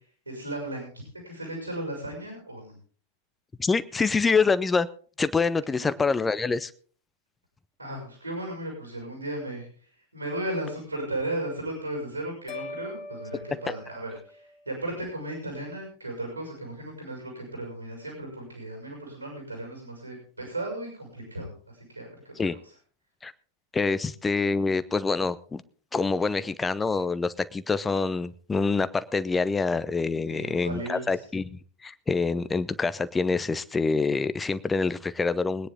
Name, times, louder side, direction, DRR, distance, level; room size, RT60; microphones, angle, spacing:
voice 1, 0.3-2.8 5.7-6.2 7.8-9.7 10.1-14.4 14.7-22.5 30.3-31.2, right 1 dB, 85° right, 0 dB, 5.9 m, -35 dB
voice 2, 3.6-4.9 5.2-6.7 22.4-22.6 23.2-23.3 23.7-25.6 25.9-35.7, left 4 dB, 15° left, 15 dB, 0.7 m, -26 dB
sound 1, 12.5-14.8, left 3 dB, 40° left, 2.6 m, -42 dB
22.5 x 9.8 x 3.7 m, 0.43 s
figure-of-eight pair, 90°, 0 cm